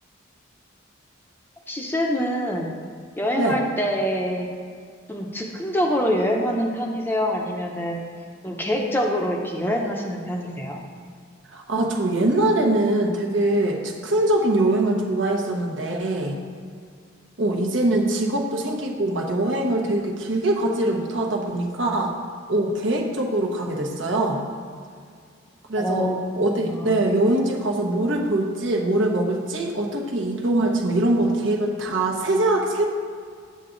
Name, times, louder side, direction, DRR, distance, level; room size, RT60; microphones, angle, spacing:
voice 1, 1.7-2.7 3.2-4.5 5.1-8.0 8.4-10.8 25.8-26.2 26.5-27.0, equal, 10° left, 0 dB, 0.7 m, -25 dB
voice 2, 11.5-16.4 17.4-22.1 22.5-24.4 25.7-26.1 26.4-32.8, right 1 dB, 65° right, 0 dB, 1.1 m, -23 dB
8.1 x 7.5 x 3.9 m, 2.1 s
head